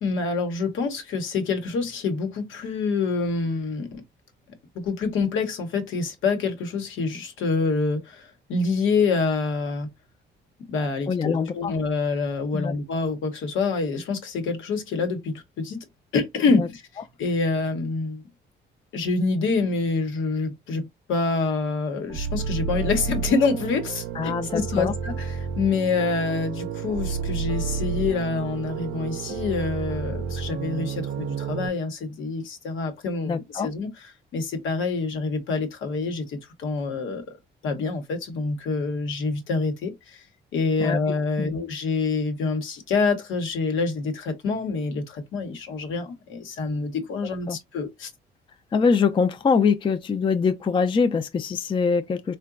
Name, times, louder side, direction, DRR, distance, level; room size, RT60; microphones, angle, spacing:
voice 1, 0.0-4.0 4.7-9.9 10.7-15.8 16.1-16.8 17.2-18.2 18.9-37.4 37.6-40.2 40.5-48.1, left 4 dB, 80° left, 0.9 m, -26 dB
voice 2, 11.1-11.7 12.5-12.7 16.6-16.7 24.2-24.9 33.3-33.7 40.8-41.0 41.4-41.6 47.5-47.6 48.7-52.4, left 5 dB, 25° left, 0.4 m, -23 dB
sound 1, 22.1-31.7, right 6 dB, 80° right, 0.5 m, -31 dB
3.7 x 2.2 x 2.4 m
cardioid pair, 90°, 20 cm